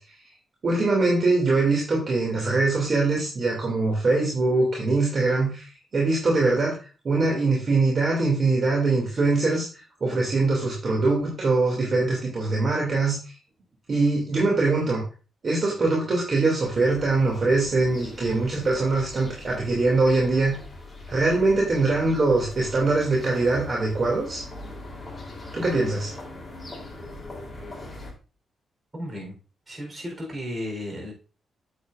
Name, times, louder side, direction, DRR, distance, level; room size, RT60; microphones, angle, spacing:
voice 1, 0.6-6.8 7.0-13.3 13.9-15.0 15.4-20.5 21.1-24.4 25.5-26.1, right 3 dB, 45° right, -2 dB, 2.6 m, -23 dB
sound 1, 16.7-28.1, left 2 dB, 15° left, 3.5 m, -41 dB
voice 2, 28.9-29.4 29.7-31.1, left 1 dB, 30° right, 1 dB, 4.1 m, -34 dB
8.4 x 7.9 x 2.6 m, 0.36 s
cardioid pair, 95°, 0 cm